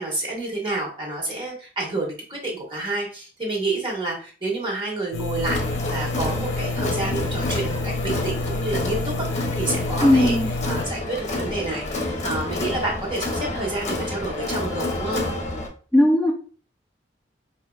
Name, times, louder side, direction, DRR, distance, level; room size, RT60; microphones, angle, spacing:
voice 1, 0.0-10.4 10.7-15.3, right 2 dB, 30° right, 1.5 m, -29 dB
sound 1, 5.1-10.9, left 2 dB, 70° left, 0.4 m, -29 dB
Crowd, 5.4-15.7, left 2 dB, 40° left, 0.9 m, -29 dB
voice 2, 10.0-10.5 15.9-16.3, left 1 dB, 5° left, 0.4 m, -17 dB
4.7 x 2.8 x 2.4 m
head